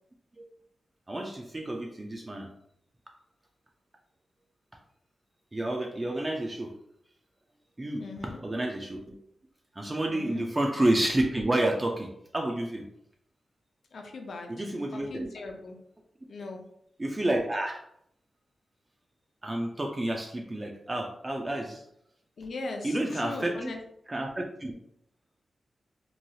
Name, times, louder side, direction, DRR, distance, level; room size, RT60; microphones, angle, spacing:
voice 1, 1.1-2.5 5.5-6.7 7.8-8.0 8.4-9.2 9.8-12.9 14.5-15.3 17.0-17.8 19.4-21.8 22.8-23.7 24.1-24.7, right 1 dB, 20° right, 1 dB, 0.3 m, -30 dB
voice 2, 8.0-8.4 10.1-10.5 13.9-14.5 14.9-15.8 16.3-16.7 22.4-23.8, left 3 dB, 65° left, 2 dB, 0.5 m, -39 dB
3.0 x 2.3 x 2.7 m, 0.74 s
wide cardioid pair, 150°, 0 cm